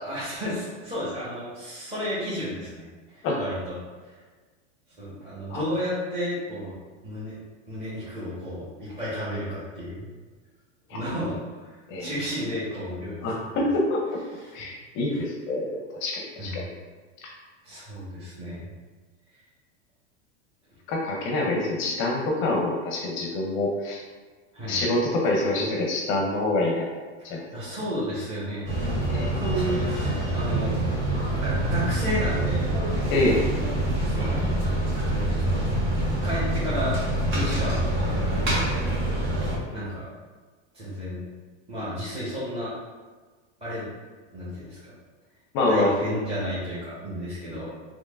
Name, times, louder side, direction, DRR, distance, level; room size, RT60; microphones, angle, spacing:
voice 1, 0.0-2.9 3.1-3.7 4.0-4.1 5.0-6.8 7.0-7.4 7.7-10.1 10.9-13.2 13.5-13.7 14.3-14.6 15.1-15.2 16.4-16.6 17.6-18.7 24.5-24.8 27.5-28.7 29.1-30.8 31.4-33.1 34.0-34.5 35.1-35.6 36.2-36.9 37.3-38.8 39.7-40.1 40.7-41.2 41.7-42.7 43.6-43.9 44.3-44.9 45.6-47.7, equal, 15° right, -13 dB, 1.1 m, -32 dB
voice 2, 13.2-14.2 14.5-16.7 17.2-17.3 20.9-24.0 24.7-26.9 27.2-27.4 29.1-29.3 33.1-33.4 45.5-45.9, left 2 dB, 35° left, 0 dB, 0.5 m, -26 dB
sound 1, 28.7-39.6, right 1 dB, 60° right, 1.5 m, -26 dB
4.4 x 2.9 x 2.4 m, 1.4 s
supercardioid pair, 145°, 35 cm